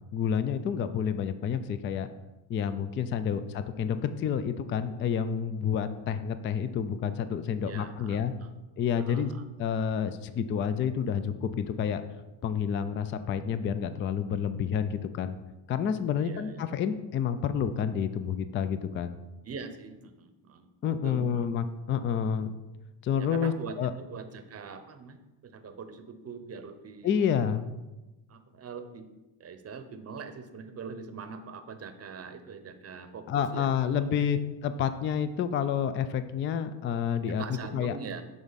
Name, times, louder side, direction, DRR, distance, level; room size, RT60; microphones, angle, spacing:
voice 1, 0.1-2.1 2.5-8.3 8.8-9.3 9.6-12.0 12.4-15.4 15.7-19.2 20.8-22.5 23.0-23.9 27.0-27.6 33.3-37.4 37.7-38.0, left 8 dB, 30° left, 11 dB, 0.3 m, -29 dB
voice 2, 7.6-8.5 9.0-9.4 16.2-16.6 19.4-20.7 21.0-21.6 23.2-27.4 28.3-29.1 29.4-33.7 34.0-34.2 37.3-38.2, right 5 dB, 30° right, 9 dB, 0.8 m, -43 dB
8.5 x 3.6 x 4.1 m, 1.1 s
supercardioid pair, 85°, 48 cm